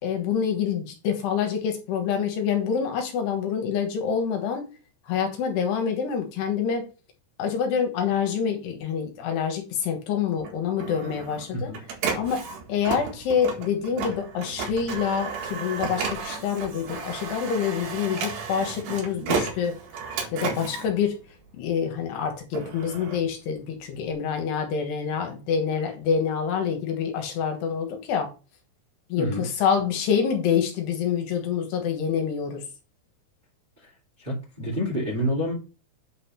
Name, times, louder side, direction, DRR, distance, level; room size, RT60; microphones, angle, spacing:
voice 1, 0.0-4.6 5.0-6.8 7.4-11.7 12.2-12.4 12.7-19.7 20.3-21.2 21.5-28.3 29.1-32.6, left 7 dB, 75° left, 4 dB, 3.3 m, -26 dB
Printer, 10.4-21.8 22.3-24.1, right 5 dB, 70° right, 3.9 m, -33 dB
voice 2, 34.2-35.5, equal, 15° right, -2 dB, 1.9 m, -28 dB
8.8 x 4.2 x 5.6 m, 0.32 s
omnidirectional pair, 5.1 m